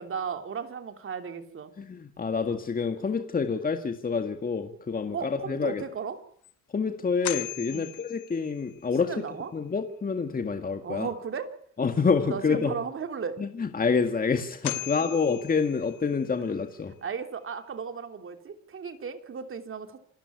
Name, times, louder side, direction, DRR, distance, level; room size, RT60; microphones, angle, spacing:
voice 1, 0.0-1.7 5.1-6.2 7.7-7.9 9.0-9.5 10.8-11.5 12.3-13.4 14.8-14.9 17.0-20.0, right 6 dB, 45° right, 7 dB, 3.2 m, -35 dB
voice 2, 1.8-5.8 6.7-9.1 9.5-11.1 11.8-12.7 13.6-16.9, left 5 dB, 30° left, 6 dB, 2.0 m, -27 dB
sound 1, 5.8-5.9 6.4-6.5 7.2-8.9 14.0-14.1 14.6-16.3, left 14 dB, 80° left, 1.8 m, -38 dB
27.5 x 13.0 x 9.7 m, 0.63 s
cardioid pair, 105°, 30 cm